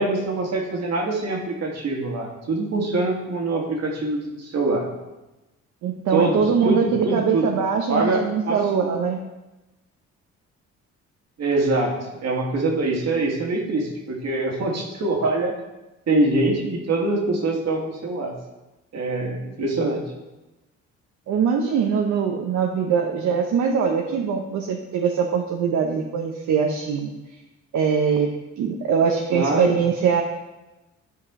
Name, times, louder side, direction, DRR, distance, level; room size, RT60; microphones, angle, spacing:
voice 1, 0.0-4.9 6.1-7.5 7.9-9.2 11.4-11.9 12.2-15.5 16.1-18.3 18.9-20.0 29.3-29.8, right 2 dB, 60° right, 0 dB, 1.9 m, -24 dB
voice 2, 5.8-9.2 21.3-27.1 27.7-30.2, right 6 dB, 75° right, 2 dB, 0.8 m, -22 dB
11.0 x 4.9 x 3.7 m, 1.0 s
cardioid pair, 90°, 30 cm